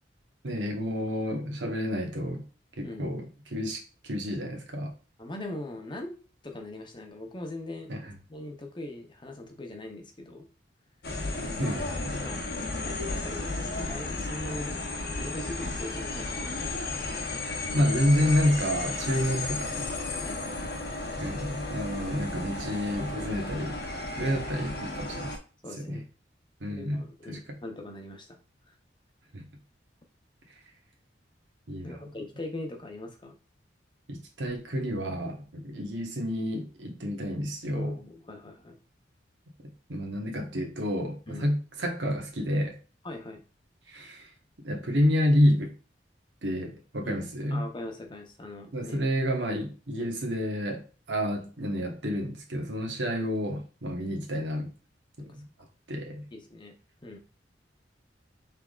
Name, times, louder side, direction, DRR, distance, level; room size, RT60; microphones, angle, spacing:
voice 1, 0.4-2.4 2.8-3.2 3.5-4.9 7.9-8.1 11.6-12.2 17.7-19.9 21.2-23.8 24.2-25.3 25.8-26.0 26.6-27.4 29.3-29.4 31.7-32.0 34.1-38.0 39.9-42.8 43.9-44.3 44.6-45.7 46.4-47.6 48.7-54.7 55.2-55.4 55.9-56.2, equal, 80° right, 2 dB, 1.2 m, -29 dB
voice 2, 5.2-6.2 6.4-7.9 8.3-10.5 12.2-12.4 12.8-14.8 15.2-16.9 20.2-20.8 24.2-24.5 25.6-26.0 26.7-28.4 28.7-28.8 31.8-33.4 37.7-38.8 41.3-41.5 43.0-43.4 47.0-47.2 47.5-49.0 49.5-49.6 50.0-50.2 55.2-55.3 55.6-55.7 56.3-56.7 57.0-57.2, left 2 dB, 25° left, 3 dB, 0.7 m, -41 dB
sound 1, 11.0-25.4, left 2 dB, 60° left, 0.9 m, -34 dB
5.8 x 3.4 x 2.4 m, 0.35 s
head